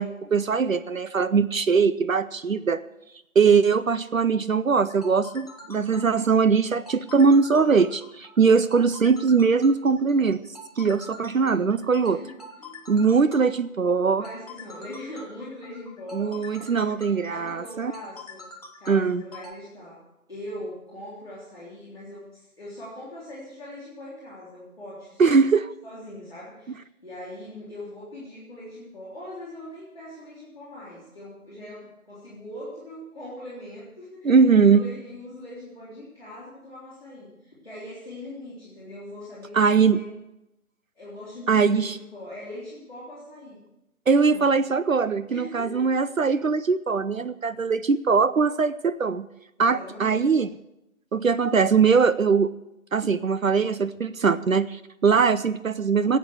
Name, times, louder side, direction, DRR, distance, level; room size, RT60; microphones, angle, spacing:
voice 1, 0.0-2.8 3.4-10.4 10.8-12.2 12.9-14.2 16.1-17.9 18.9-19.2 25.2-25.7 34.2-34.8 39.5-40.0 41.5-42.0 44.1-49.3 49.6-50.5 51.1-52.5 52.9-56.2, right 5 dB, 65° right, 14 dB, 0.6 m, -21 dB
sound 1, 4.8-19.5, left 2 dB, 25° left, 1.3 m, -45 dB
voice 2, 12.0-12.8 14.2-18.5 18.8-25.2 25.8-40.1 40.9-43.6 44.1-44.6 45.3-45.8 48.4-48.5 49.6-50.4, left 1 dB, ahead, -15 dB, 1.1 m, -41 dB
15.0 x 8.2 x 7.2 m, 0.90 s
figure-of-eight pair, 160°, 44 cm